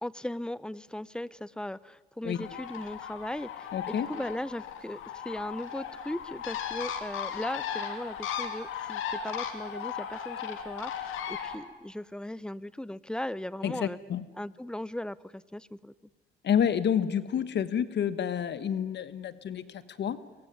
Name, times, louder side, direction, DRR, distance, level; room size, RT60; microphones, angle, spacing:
voice 1, 0.0-14.0 14.4-15.9, left 1 dB, 5° left, 19 dB, 0.8 m, -38 dB
Bird, 2.3-11.6, left 8 dB, 85° left, 2.9 m, -37 dB
voice 2, 3.7-4.2 13.6-14.2 16.4-20.2, left 8 dB, 60° left, 14 dB, 1.4 m, -29 dB
24.0 x 22.0 x 9.5 m, 1.2 s
cardioid pair, 90°, 20 cm